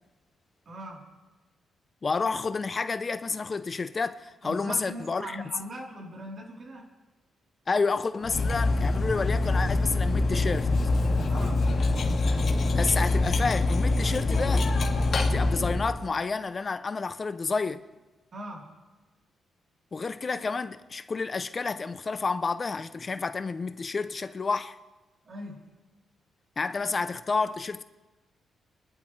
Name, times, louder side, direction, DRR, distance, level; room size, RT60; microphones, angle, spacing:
voice 1, 0.7-1.1 4.4-6.9 11.3-11.7 18.3-18.7 25.3-25.6, right 1 dB, 50° right, 3.6 m, -40 dB
voice 2, 2.0-5.3 7.7-10.7 12.7-14.7 15.1-17.8 19.9-24.8 26.6-27.8, left 4 dB, 35° left, 0.6 m, -30 dB
Cutlery silverware, 8.2-16.0, left 2 dB, 50° left, 2.2 m, -25 dB
28.5 x 12.0 x 3.3 m
cardioid pair, 95°, 0 cm